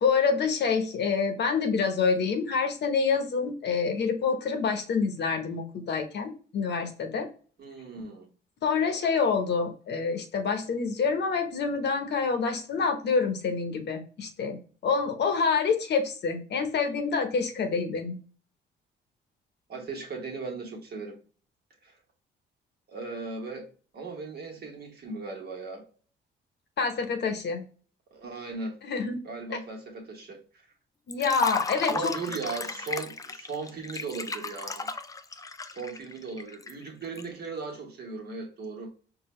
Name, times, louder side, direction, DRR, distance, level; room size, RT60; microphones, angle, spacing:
voice 1, 0.0-7.3 8.6-18.2 26.8-27.6 28.8-29.2 29.5-29.6 31.1-32.1, left 5 dB, 60° left, 0.9 m, -27 dB
voice 2, 7.6-8.3 19.7-21.2 21.8-21.9 22.9-23.7 23.9-25.8 28.1-28.8 29.2-30.7 31.8-34.9 35.7-38.9, right 4 dB, 55° right, 1.4 m, -37 dB
Liquid, 31.1-37.2, left 4 dB, 15° left, 0.3 m, -34 dB
4.7 x 2.3 x 3.1 m
cardioid pair, 90°, 20 cm